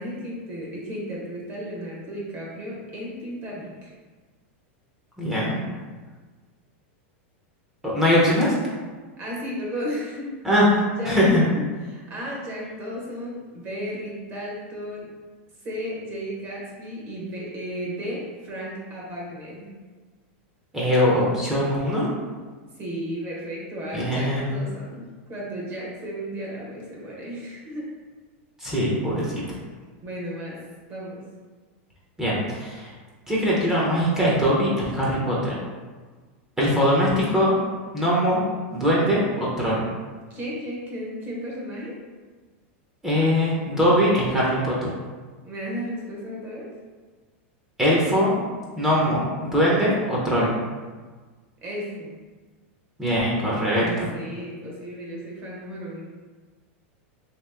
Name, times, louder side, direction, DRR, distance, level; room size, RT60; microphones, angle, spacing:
voice 1, 0.0-3.9 9.2-10.3 11.0-15.1 15.6-19.7 22.8-27.9 30.0-30.6 30.9-31.2 40.3-42.0 45.4-46.7 51.6-52.1 53.7-56.0, equal, 30° right, -4 dB, 1.0 m, -34 dB
voice 2, 5.2-5.6 7.8-8.6 10.4-11.4 20.7-22.1 23.9-24.5 28.6-29.4 32.2-32.9 33.3-35.5 36.6-37.5 37.9-38.4 38.7-39.8 43.0-44.9 47.8-48.3 48.8-50.5 53.0-54.1, equal, 10° right, -6 dB, 0.7 m, -21 dB
2.9 x 2.9 x 3.5 m, 1.4 s
supercardioid pair, 150°, 7 cm